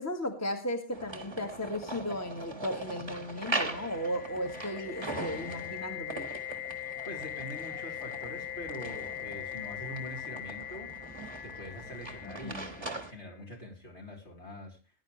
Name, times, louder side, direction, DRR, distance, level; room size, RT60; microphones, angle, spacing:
voice 1, 0.0-6.3 12.2-12.7, left 1 dB, 10° left, 4 dB, 1.7 m, -35 dB
sound 1, 0.9-13.1, right 2 dB, 20° right, 1.5 m, -41 dB
sound 2, 3.4-13.3, left 11 dB, 80° left, 1.7 m, -41 dB
voice 2, 7.1-10.9 11.4-14.8, equal, 55° left, 0 dB, 4.0 m, -44 dB
19.0 x 10.5 x 3.2 m, 0.30 s
omnidirectional pair, 1.4 m